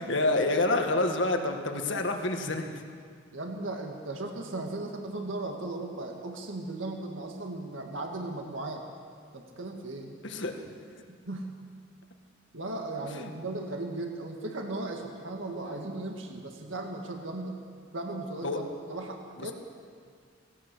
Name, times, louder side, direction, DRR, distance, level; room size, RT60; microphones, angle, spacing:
voice 1, 0.0-2.8 10.2-10.8 13.1-13.3 18.4-18.6 19.4-19.5, left 2 dB, 65° left, 4 dB, 1.9 m, -28 dB
voice 2, 3.3-8.8 9.3-10.2 11.1-11.5 12.5-17.6 17.9-19.5, right 2 dB, 75° right, 2 dB, 2.0 m, -37 dB
18.5 x 16.5 x 8.3 m, 2.1 s
head